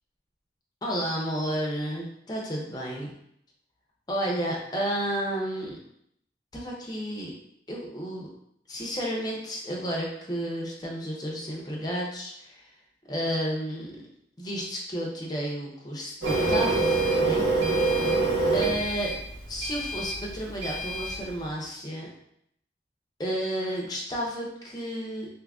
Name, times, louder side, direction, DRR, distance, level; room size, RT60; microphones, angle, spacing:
voice 1, 0.8-3.1 4.1-5.8 6.5-7.3 7.7-8.3 8.7-12.7 13.1-13.9 14.4-17.5 18.5-19.1 19.5-22.1 23.2-25.3, equal, 25° left, -2 dB, 0.6 m, -32 dB
Printer, 16.2-21.2, right 3 dB, 75° right, 1.2 m, -26 dB
2.7 x 2.4 x 3.5 m, 0.72 s
head